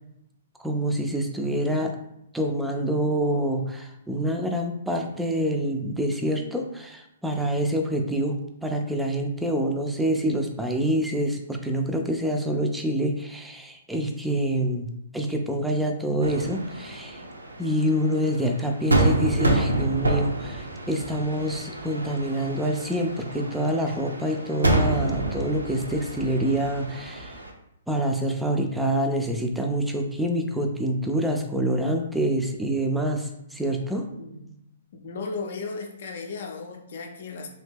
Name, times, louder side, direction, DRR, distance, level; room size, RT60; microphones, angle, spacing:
voice 1, 0.6-2.0 2.3-14.9 15.1-17.2 17.6-27.4 27.9-34.1, right 1 dB, 5° right, 3 dB, 0.4 m, -26 dB
sound 1, 16.2-27.5, right 2 dB, 85° right, 0.6 m, -28 dB
voice 2, 34.9-37.5, left 4 dB, 55° left, 2 dB, 0.6 m, -35 dB
2.8 x 2.7 x 3.5 m, 0.81 s
figure-of-eight pair, 120°, 0 cm